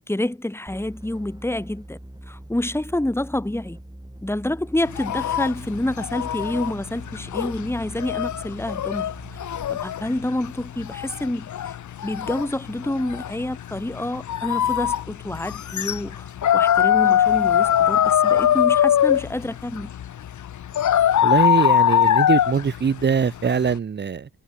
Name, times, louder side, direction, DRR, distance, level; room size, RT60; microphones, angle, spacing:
voice 1, 0.0-2.0 2.3-3.8 4.2-9.4 9.7-11.7 12.0-19.9, left 1 dB, 5° left, 1.4 m, -28 dB
sound 1, 0.7-9.8, right 1 dB, 10° right, 7.1 m, -42 dB
sound 2, 4.9-23.8, left 10 dB, 55° left, 0.5 m, -22 dB
voice 2, 21.2-24.3, right 6 dB, 30° right, 0.4 m, -22 dB
cardioid pair, 65°, 38 cm